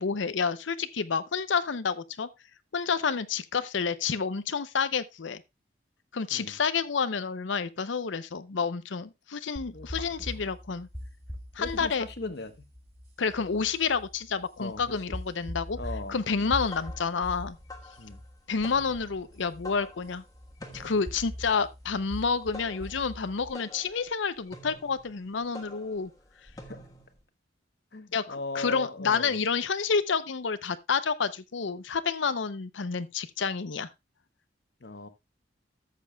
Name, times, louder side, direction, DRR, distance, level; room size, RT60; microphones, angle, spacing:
voice 1, 0.0-2.3 2.7-5.4 6.1-10.9 11.5-12.1 13.2-15.8 16.1-17.6 18.5-20.2 20.7-26.1 28.1-28.3 28.5-33.9, left 5 dB, 80° left, 0.6 m, -29 dB
sound 1, 9.6-23.5, equal, 15° right, 3.1 m, -42 dB
voice 2, 9.7-10.2 11.6-12.6 14.6-15.2 15.8-16.2 18.0-18.2 26.6-26.8 27.9-29.3 34.8-35.1, left 2 dB, 60° left, 1.1 m, -38 dB
sound 2, 16.4-27.2, left 1 dB, 20° left, 1.3 m, -48 dB
13.5 x 7.6 x 2.3 m
head